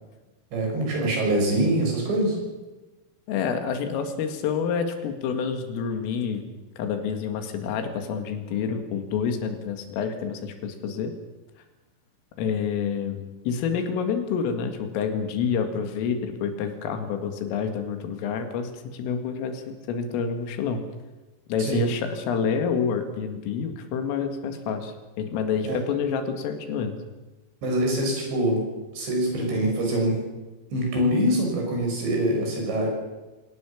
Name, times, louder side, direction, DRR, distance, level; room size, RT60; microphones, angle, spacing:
voice 1, 0.5-2.4 21.6-21.8 25.6-25.8 27.6-30.3 30.7-32.9, right 1 dB, 60° right, 1 dB, 8.6 m, -24 dB
voice 2, 3.3-6.4 6.8-11.1 12.4-20.8 21.5-27.0, left 6 dB, 85° left, 7 dB, 4.6 m, -28 dB
25.5 x 18.0 x 7.4 m, 1.1 s
omnidirectional pair, 5.7 m